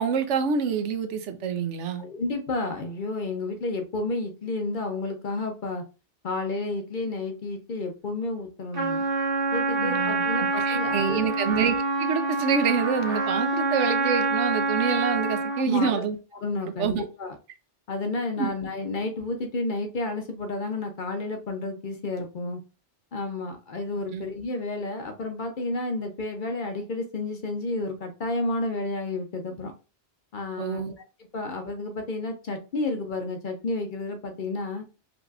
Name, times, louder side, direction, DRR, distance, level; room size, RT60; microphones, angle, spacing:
voice 1, 0.0-2.0 9.8-10.2 10.7-16.2 16.8-17.0 18.4-18.5 24.1-24.2 30.6-30.9, right 6 dB, 85° right, 1.0 m, -27 dB
voice 2, 2.0-5.8 6.2-9.1 9.5-11.3 15.5-16.0 16.3-17.4 17.9-22.6 23.1-29.7 30.3-30.8 31.3-34.8, left 2 dB, 50° left, 0.7 m, -31 dB
Trumpet, 8.7-15.7, right 3 dB, 50° right, 1.2 m, -26 dB
5.1 x 3.0 x 2.4 m
omnidirectional pair, 1.2 m